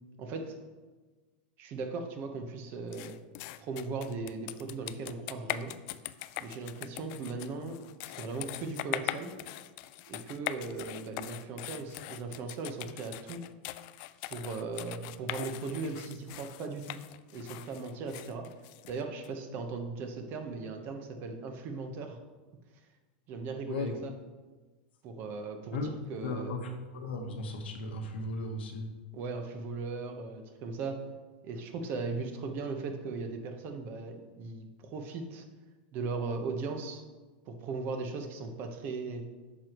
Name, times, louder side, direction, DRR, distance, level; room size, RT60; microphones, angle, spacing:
voice 1, 0.2-0.6 1.6-3.2 3.6-5.7 6.4-9.3 10.1-13.4 14.3-17.0 17.3-18.5 18.9-22.2 23.3-24.1 25.0-26.6 29.1-31.0 31.4-35.4 35.9-37.0 37.5-39.2, right 4 dB, 40° right, 5 dB, 1.0 m, -38 dB
sound 1, 2.9-19.3, left 15 dB, 50° left, 0.3 m, -41 dB
voice 2, 26.2-28.9, left 2 dB, 90° left, 3 dB, 1.2 m, -36 dB
9.9 x 6.2 x 3.0 m, 1.3 s
supercardioid pair, 140°, 5 cm